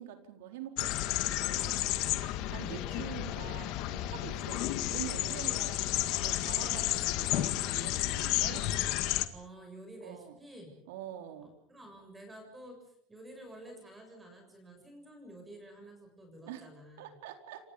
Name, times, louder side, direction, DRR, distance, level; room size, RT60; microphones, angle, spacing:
voice 1, 0.0-1.9 2.4-8.6 10.0-10.3 10.9-11.5 16.5-16.7 17.0-17.6, right 11 dB, 85° right, 5 dB, 4.3 m, -45 dB
sound 1, 0.8-9.3, left 15 dB, 50° left, 1.9 m, -32 dB
voice 2, 2.5-3.1 9.3-10.8 11.4-17.1, right 1 dB, 10° right, 3 dB, 7.0 m, -50 dB
29.5 x 27.0 x 5.3 m, 0.67 s
supercardioid pair, 160°, 0 cm